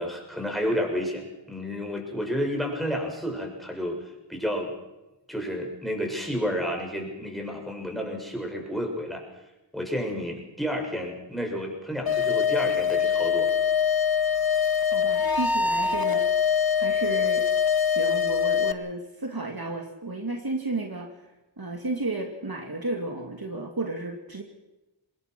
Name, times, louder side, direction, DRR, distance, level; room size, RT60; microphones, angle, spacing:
voice 1, 0.0-4.7 5.3-9.2 9.7-13.5, equal, ahead, 2 dB, 6.8 m, -31 dB
sound 1, 12.1-18.7, left 7 dB, 50° left, 1.1 m, -23 dB
voice 2, 14.9-16.4 16.8-17.4 17.9-21.1 21.6-24.4, right 2 dB, 50° right, 2 dB, 2.6 m, -32 dB
24.5 x 20.0 x 6.2 m, 1.0 s
wide cardioid pair, 40°, 45 cm